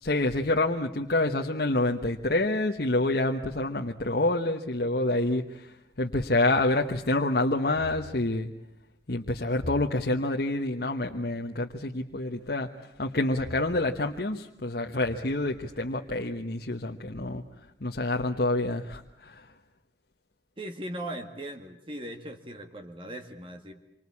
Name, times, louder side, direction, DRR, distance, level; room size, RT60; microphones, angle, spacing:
voice 1, 0.0-8.5 9.1-12.7 13.0-17.4 17.8-19.5, left 2 dB, 55° left, 2 dB, 1.2 m, -27 dB
voice 2, 20.6-23.7, right 1 dB, 30° right, 5 dB, 1.9 m, -39 dB
27.0 x 25.0 x 8.5 m, 0.78 s
head